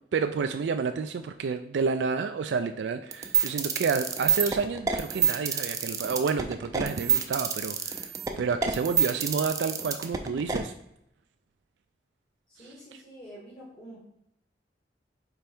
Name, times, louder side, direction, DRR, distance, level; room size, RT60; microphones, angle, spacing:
voice 1, 0.1-8.1 8.4-10.7 12.6-12.7, right 5 dB, 85° right, 7 dB, 0.4 m, -29 dB
sound 1, 3.1-10.6, right 7 dB, 20° right, 0.5 m, -26 dB
voice 2, 12.5-14.0, equal, 35° left, -5 dB, 1.6 m, -47 dB
5.2 x 4.4 x 4.4 m, 0.77 s
head